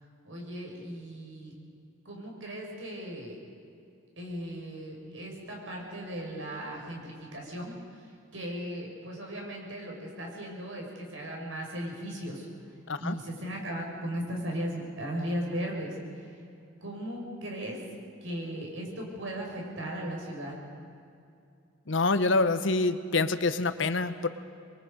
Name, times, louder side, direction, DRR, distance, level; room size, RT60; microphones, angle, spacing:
voice 1, 0.2-1.5 2.0-3.4 4.2-7.7 8.3-12.5 13.0-16.2 16.8-17.8 18.2-20.5, equal, 90° right, -1 dB, 5.7 m, -37 dB
voice 2, 21.9-24.3, left 3 dB, 75° left, 11 dB, 1.0 m, -26 dB
26.5 x 22.5 x 5.2 m, 2.5 s
head